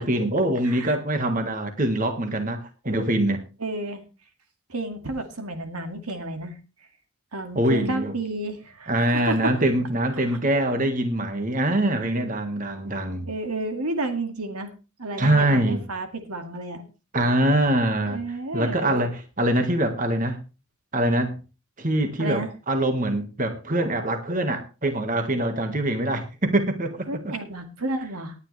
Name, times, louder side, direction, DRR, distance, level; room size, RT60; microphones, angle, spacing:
voice 1, 0.0-2.6 2.8-3.4 7.5-8.1 8.9-13.3 15.2-15.8 17.1-18.2 18.5-20.4 20.9-21.3 21.8-27.3, right 1 dB, 35° right, 1.6 m, -24 dB
voice 2, 0.6-1.0 3.6-4.0 4.7-6.6 7.3-9.5 10.3-10.4 13.3-14.7 15.0-16.9 18.1-19.0 22.2-22.5 27.1-28.3, right 2 dB, 85° right, 2.1 m, -31 dB
19.0 x 9.8 x 3.3 m
head